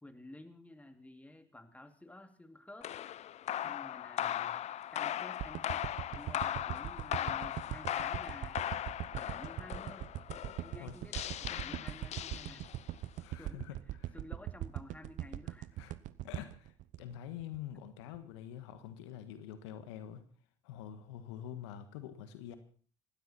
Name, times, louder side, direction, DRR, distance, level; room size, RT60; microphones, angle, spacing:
voice 1, 0.0-2.9 3.6-4.6 4.9-8.6 9.1-10.1 10.6-12.7 13.4-13.7 14.1-15.7, left 1 dB, 10° left, 8 dB, 2.4 m, -52 dB
sound 1, 2.8-13.0, left 11 dB, 50° left, 0.7 m, -38 dB
sound 2, 5.4-17.7 18.1-18.2, right 14 dB, 60° right, 0.8 m, -41 dB
voice 2, 13.2-13.8 14.1-14.2 15.8-15.9 16.2-16.7 17.0-20.2 20.6-22.6, left 10 dB, 80° left, 10 dB, 1.6 m, -46 dB
19.0 x 16.0 x 4.3 m, 0.42 s
hypercardioid pair, 60°, 14 cm